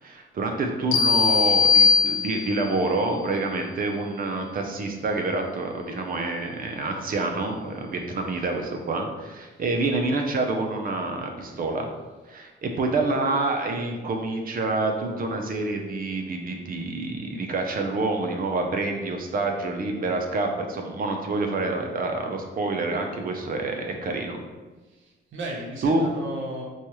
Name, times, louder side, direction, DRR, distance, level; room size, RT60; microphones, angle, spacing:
voice 1, 0.0-11.9 12.3-24.4 25.8-26.1, right 2 dB, 45° right, 3 dB, 0.6 m, -27 dB
sound 1, 0.9-2.7, left 5 dB, 75° left, 0.6 m, -20 dB
voice 2, 24.9-26.6, right 1 dB, 75° right, -1 dB, 0.9 m, -35 dB
4.3 x 2.3 x 3.0 m, 1.3 s
cardioid pair, 90°, 20 cm